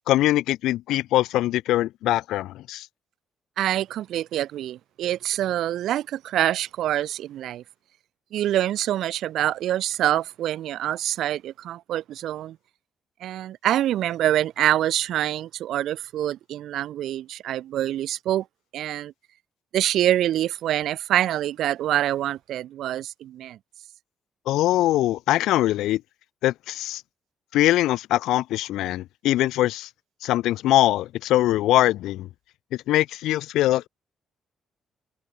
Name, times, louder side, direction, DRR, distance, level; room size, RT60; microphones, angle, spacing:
voice 1, 0.1-2.9 24.5-26.0 26.4-27.0 27.5-29.9 30.2-32.3 32.7-33.9, left 15 dB, 90° left, 0.4 m, -22 dB
voice 2, 3.6-7.6 8.3-12.6 13.2-18.4 18.7-19.1 19.7-23.6, right 12 dB, 80° right, 1.6 m, -25 dB
cardioid pair, 90°, 0 cm